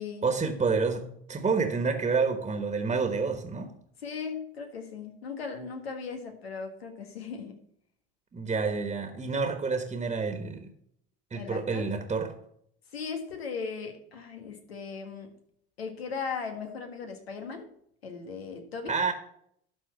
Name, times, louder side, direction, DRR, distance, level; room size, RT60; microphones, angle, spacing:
voice 1, 0.2-3.7 8.3-10.7 11.3-12.3 18.9-19.1, right 4 dB, 20° right, 6 dB, 1.4 m, -28 dB
voice 2, 4.0-7.6 11.3-11.9 12.9-15.3 15.8-17.7 18.0-19.0, left 5 dB, 90° left, 5 dB, 1.8 m, -37 dB
12.0 x 4.2 x 6.8 m, 0.68 s
hypercardioid pair, 70°, 30 cm